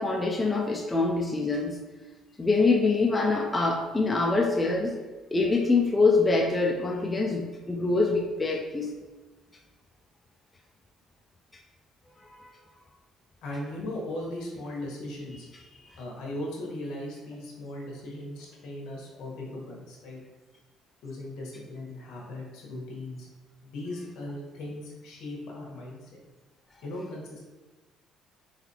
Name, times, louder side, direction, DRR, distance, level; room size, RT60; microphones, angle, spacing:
voice 1, 0.0-1.8 2.4-5.0 5.3-8.9 12.2-12.4 15.5-16.0, left 3 dB, 15° left, 0 dB, 0.3 m, -25 dB
voice 2, 13.4-15.5 15.9-20.2 21.0-23.3 23.6-26.2 26.8-27.4, left 1 dB, 75° left, -2 dB, 1.2 m, -38 dB
4.0 x 3.8 x 2.8 m, 1.2 s
cardioid pair, 150°, 0 cm